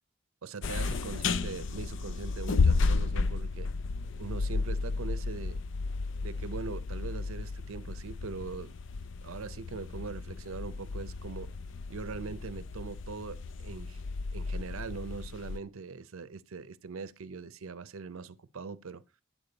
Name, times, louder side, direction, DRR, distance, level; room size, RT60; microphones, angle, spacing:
voice 1, 0.4-3.7 4.2-5.6 6.2-8.7 9.2-11.5 11.9-14.0 14.3-19.0, right 4 dB, 80° right, 0.6 m, -41 dB
sound 1, 0.6-15.6, left 4 dB, 60° left, 0.4 m, -33 dB
8.7 x 6.8 x 3.9 m
head